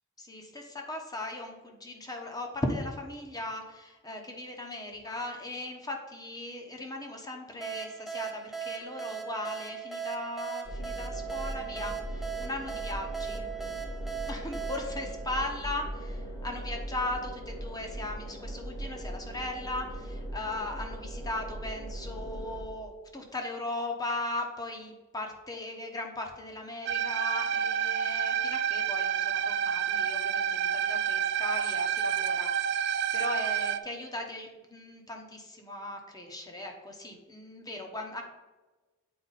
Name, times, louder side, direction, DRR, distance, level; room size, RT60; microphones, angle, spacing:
voice 1, 0.2-13.5 14.3-38.2, left 2 dB, 20° left, 3 dB, 1.0 m, -38 dB
sound 1, 7.6-16.1, right 7 dB, ahead, 0.6 m, -39 dB
sound 2, 10.6-22.6, right 1 dB, 80° left, 2.3 m, -39 dB
sound 3, 26.9-33.8, right 8 dB, 55° right, 0.3 m, -29 dB
8.8 x 4.4 x 4.1 m, 1.2 s
head